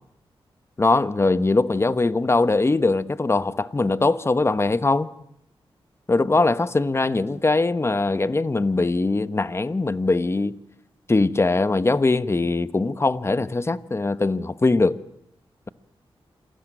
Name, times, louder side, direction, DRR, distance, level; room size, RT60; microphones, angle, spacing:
voice 1, 0.8-5.1 6.1-10.6 11.1-15.0, left 3 dB, 25° left, 1.0 m, -21 dB
28.0 x 19.5 x 9.1 m
wide cardioid pair, 85°, 10 cm